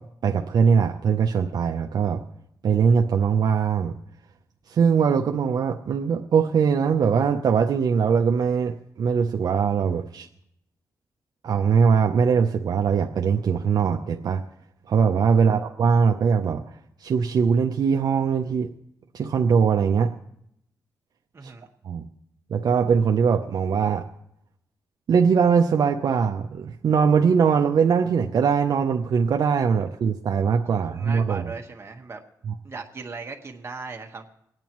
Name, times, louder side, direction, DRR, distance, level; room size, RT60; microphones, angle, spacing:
voice 1, 0.2-2.2 2.6-3.9 4.7-10.3 11.4-14.4 14.9-18.7 19.1-20.1 21.4-21.5 21.8-22.0 22.5-24.0 25.1-31.5 32.5-32.6, right 6 dB, 65° right, 3 dB, 0.6 m, -21 dB
voice 2, 21.3-21.7 30.7-32.2 32.6-34.2, right 4 dB, 35° right, 2 dB, 1.4 m, -38 dB
26.5 x 9.0 x 3.0 m, 0.77 s
cardioid pair, 110°, 7 cm